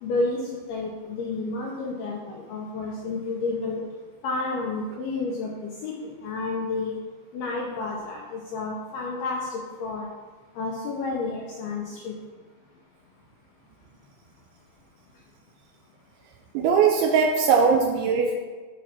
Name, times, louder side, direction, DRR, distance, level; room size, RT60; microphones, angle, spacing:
voice 1, 0.0-3.8 4.2-6.9 7.3-10.1 10.6-12.2, left 3 dB, 85° left, -2 dB, 2.2 m, -30 dB
voice 2, 16.5-18.3, right 5 dB, 85° right, 1 dB, 2.9 m, -20 dB
11.5 x 6.2 x 2.9 m, 1.4 s
omnidirectional pair, 5.5 m